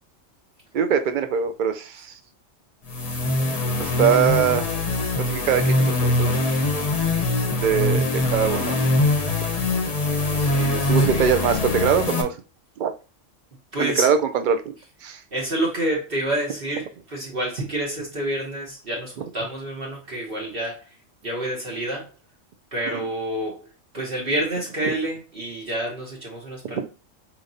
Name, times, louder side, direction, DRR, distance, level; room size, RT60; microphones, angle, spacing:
voice 1, 0.7-2.2 3.8-4.7 5.2-6.4 7.6-8.8 10.9-12.4 12.8-12.9 13.8-14.2 14.5-14.7 15.0-15.2 22.9-23.1 24.8-24.9 26.7-26.9, right 7 dB, 65° right, 0.4 m, -22 dB
sound 1, 2.8-12.2, left 2 dB, 35° left, 0.7 m, -22 dB
voice 2, 10.4-11.2 13.7-14.1 15.3-21.0 21.2-22.1 22.7-26.9, right 1 dB, 50° right, 1.1 m, -28 dB
4.9 x 3.0 x 2.6 m
omnidirectional pair, 1.3 m